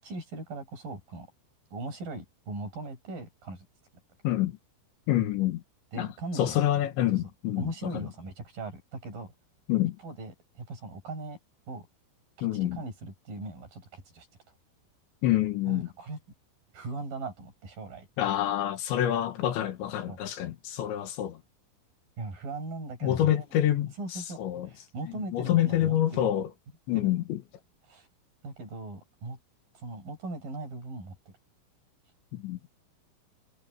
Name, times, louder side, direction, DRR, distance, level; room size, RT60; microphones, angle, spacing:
voice 1, 0.0-1.3 1.7-3.6 5.9-6.6 7.6-9.3 10.0-11.4 11.7-11.9 12.4-14.3 15.7-16.2 16.7-18.1 20.1-20.2 22.2-23.4 24.0-24.4 24.6-26.3 26.9-27.1 27.9-28.1 28.4-29.4 29.7-31.2, right 2 dB, 45° right, 8.2 m, -39 dB
voice 2, 4.2-4.6 5.1-5.6 6.0-6.1 6.4-8.1 9.7-10.0 12.4-12.8 15.2-15.9 18.2-21.4 23.0-24.7 25.1-26.5 26.9-27.4 32.3-32.6, left 12 dB, 75° left, 3.8 m, -27 dB
omnidirectional pair, 5.5 m